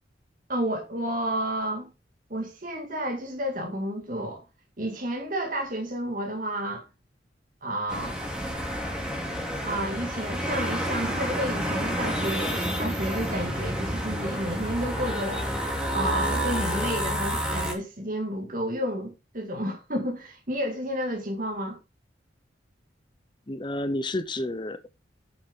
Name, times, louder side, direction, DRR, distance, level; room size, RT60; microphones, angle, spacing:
voice 1, 0.5-1.9 2.3-4.4 4.8-6.9 7.6-8.2 9.6-15.5 15.9-21.8, right 1 dB, 45° right, 2.1 m, -31 dB
sound 1, 7.9-17.7, equal, 5° right, 2.7 m, -29 dB
voice 2, 23.5-24.9, left 1 dB, 25° left, 0.7 m, -30 dB
8.9 x 7.2 x 3.7 m
head